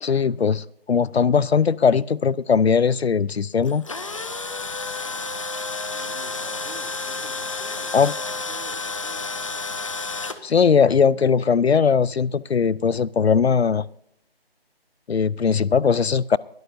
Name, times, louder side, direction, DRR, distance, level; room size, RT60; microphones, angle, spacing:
voice 1, 0.0-3.8 7.9-8.1 10.4-13.9 15.1-16.4, left 6 dB, 85° left, 0.6 m, -19 dB
Tools, 3.6-10.4, left 3 dB, 30° left, 0.9 m, -31 dB
voice 2, 5.8-9.6, right 3 dB, 70° right, 2.8 m, -47 dB
23.5 x 12.0 x 2.7 m
figure-of-eight pair, 170°, 31 cm